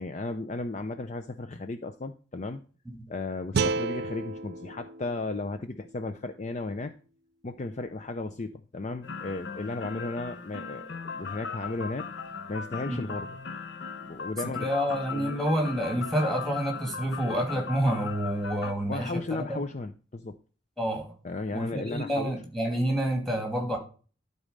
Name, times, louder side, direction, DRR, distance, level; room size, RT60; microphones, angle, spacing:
voice 1, 0.0-2.6 3.1-6.9 7.4-12.1 12.5-13.3 14.0-14.7 15.1-15.3 18.9-20.4 21.2-22.3, left 2 dB, 35° left, 9 dB, 0.5 m, -35 dB
sound 1, 3.5-6.6, right 4 dB, 55° right, 0.4 m, -33 dB
sound 2, 9.0-18.7, left 5 dB, 65° left, 0.8 m, -39 dB
voice 2, 14.6-19.2 19.5-19.6 20.8-21.1 21.5-23.8, equal, ahead, 3 dB, 2.3 m, -28 dB
12.5 x 4.2 x 5.1 m, 0.37 s
head